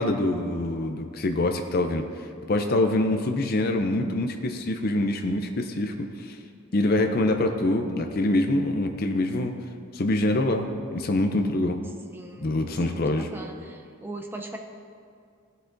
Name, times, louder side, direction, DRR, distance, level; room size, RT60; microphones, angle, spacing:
voice 1, 0.0-6.4 6.7-9.5 9.9-11.8 12.4-13.3, left 1 dB, 45° left, 5 dB, 0.5 m, -25 dB
voice 2, 12.1-12.5 12.8-14.6, right 2 dB, 10° right, 2 dB, 0.6 m, -39 dB
16.0 x 8.1 x 2.6 m, 2.3 s
head